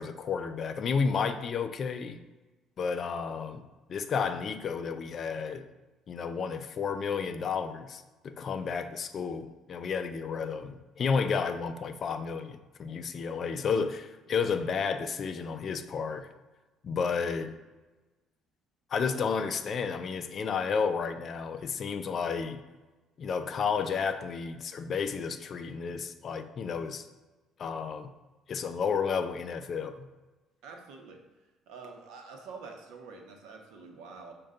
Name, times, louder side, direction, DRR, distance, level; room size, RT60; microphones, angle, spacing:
voice 1, 0.0-2.2 2.8-5.7 6.1-16.3 16.8-17.6 18.9-22.6 23.2-27.1 27.6-28.1 28.5-30.0, left 5 dB, 40° left, 9 dB, 0.3 m, -32 dB
voice 2, 30.6-31.2 31.7-34.3, right 4 dB, 90° right, 3 dB, 0.7 m, -46 dB
6.4 x 2.2 x 3.7 m, 1.2 s
cardioid pair, 130°, 0 cm